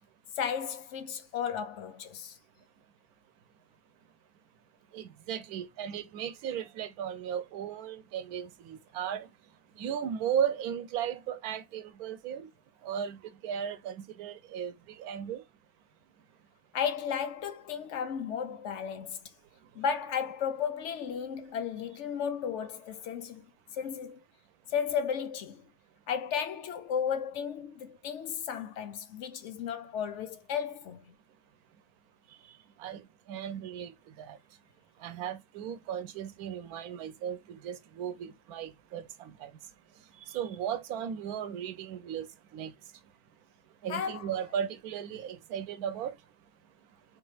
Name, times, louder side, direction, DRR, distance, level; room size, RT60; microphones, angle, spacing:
voice 1, 0.3-2.4 16.7-19.3 19.7-23.5 23.7-24.2 24.7-25.7 26.1-31.1 43.9-44.3, left 7 dB, 65° left, 0.7 m, -34 dB
voice 2, 4.9-9.3 9.8-12.5 12.8-15.4 32.8-34.4 35.0-39.5 40.3-42.3 42.5-42.7 43.8-46.2, right 9 dB, 75° right, 1.1 m, -36 dB
4.3 x 2.4 x 3.1 m
omnidirectional pair, 1.6 m